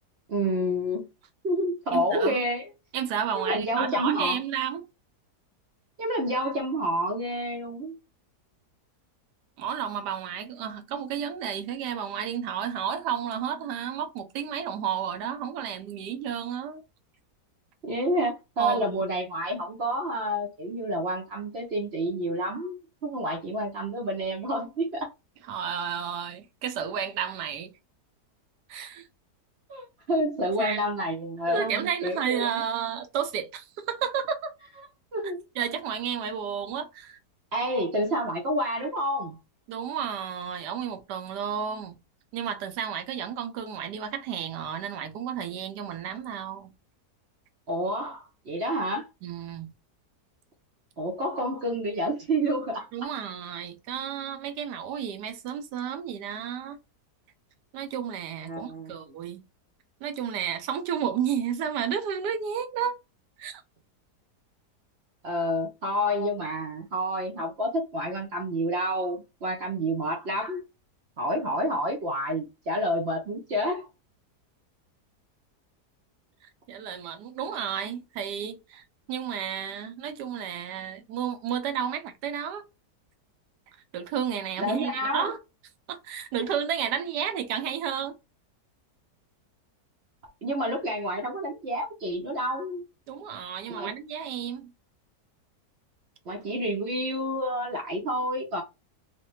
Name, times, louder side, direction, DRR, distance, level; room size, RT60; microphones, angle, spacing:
voice 1, 0.3-1.1 1.4-2.7 3.3-4.4 6.0-8.0 17.8-25.1 29.7-32.6 35.1-35.4 37.5-39.4 47.7-49.1 51.0-52.9 58.5-58.9 65.2-70.6 71.2-73.9 84.6-85.3 90.4-92.9 93.7-93.9 96.3-98.6, equal, 55° right, 0.7 m, -29 dB
voice 2, 1.9-2.5 2.9-4.8 9.6-16.8 18.6-19.1 25.5-27.7 28.7-29.1 30.6-30.8 31.5-34.5 35.5-37.2 39.7-42.0 42.3-46.7 49.2-49.7 52.9-56.8 57.7-59.4 60.0-63.0 63.4-63.6 76.7-82.6 83.9-85.4 85.9-88.2 93.1-94.7, right 8 dB, 80° right, 1.2 m, -32 dB
3.1 x 2.2 x 3.0 m
omnidirectional pair, 1.8 m